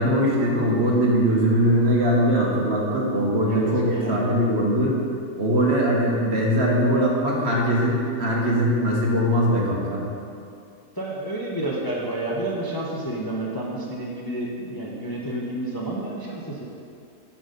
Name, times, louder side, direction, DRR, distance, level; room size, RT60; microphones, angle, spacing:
voice 1, 0.0-4.9 5.4-10.0, equal, 45° right, -3 dB, 1.6 m, -21 dB
voice 2, 3.5-4.3 10.9-16.6, right 1 dB, 15° left, -4 dB, 0.9 m, -30 dB
10.5 x 5.9 x 5.3 m, 2.5 s
omnidirectional pair, 1.6 m